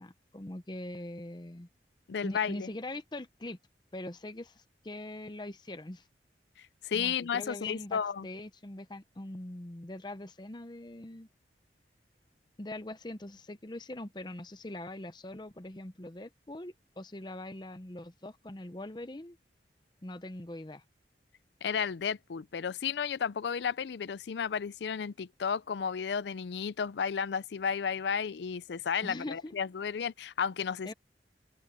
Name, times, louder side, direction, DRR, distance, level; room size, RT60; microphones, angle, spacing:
voice 1, 0.0-1.7 2.2-3.6 3.9-6.1 6.9-11.3 12.6-19.4 20.0-20.8 29.0-29.6 30.8-30.9, left 1 dB, 25° left, 0.7 m, -42 dB
voice 2, 2.1-2.7 6.6-8.3 21.6-30.9, left 7 dB, 75° left, 0.4 m, -33 dB
open air
head